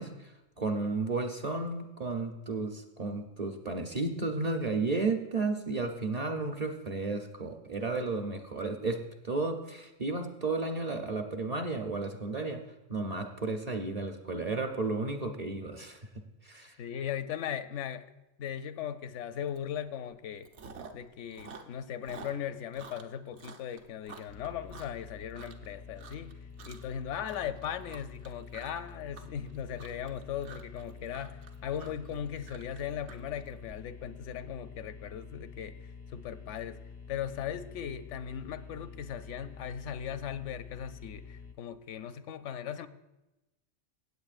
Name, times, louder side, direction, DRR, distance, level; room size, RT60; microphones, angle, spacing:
voice 1, 0.0-12.6 12.9-16.0 16.4-16.7, right 3 dB, 40° right, 4 dB, 0.6 m, -33 dB
voice 2, 16.8-18.1 18.4-20.5 20.9-26.4 26.6-35.7 36.1-36.8 37.1-42.9, left 9 dB, 75° left, 11 dB, 0.9 m, -38 dB
Chewing mastication, 19.6-19.8 20.1-21.1 21.3-25.7 26.0-26.3 26.6-27.0 27.2-33.7, right 5 dB, 65° right, 1.1 m, -49 dB
sound 1, 24.3-41.5, left 5 dB, 35° left, 0.4 m, -48 dB
16.0 x 8.4 x 2.5 m, 0.99 s
omnidirectional pair, 1.3 m